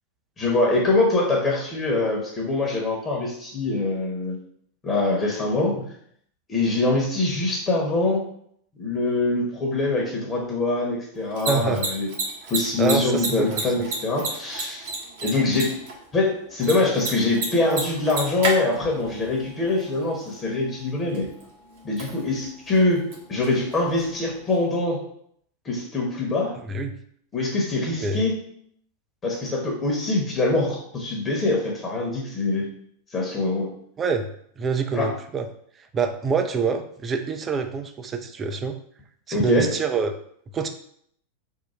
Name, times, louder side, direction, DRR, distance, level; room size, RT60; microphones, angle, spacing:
voice 1, 0.4-4.4 4.8-5.8 6.5-8.3 8.8-12.1 12.5-14.9 15.2-15.7 16.1-21.3 21.8-25.0 25.6-26.5 27.3-28.4 29.2-32.7 33.1-33.7 34.9-35.1 39.3-39.7, left 2 dB, 20° left, -2 dB, 1.1 m, -24 dB
Mechanisms, 11.1-24.8, right 3 dB, 55° right, 1.0 m, -34 dB
voice 2, 11.5-11.8 12.8-13.7 26.6-26.9 28.0-28.3 34.0-34.3 34.6-35.5 35.9-38.8 39.3-40.1 40.5-40.7, right 5 dB, 25° right, 6 dB, 0.4 m, -26 dB
3.6 x 2.2 x 4.3 m, 0.66 s
figure-of-eight pair, 90°, 0 cm